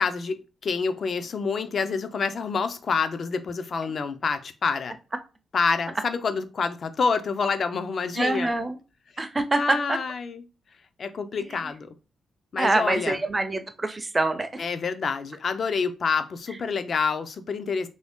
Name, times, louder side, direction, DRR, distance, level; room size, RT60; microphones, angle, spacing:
voice 1, 0.0-5.0 5.5-8.5 9.6-10.4 11.0-11.9 12.5-13.2 14.6-17.9, left 5 dB, 50° left, 0.4 m, -27 dB
voice 2, 8.2-8.8 9.2-10.0 11.5-11.7 12.6-14.6, right 2 dB, 20° right, 0.5 m, -25 dB
3.1 x 2.7 x 3.5 m
cardioid pair, 115°, 0 cm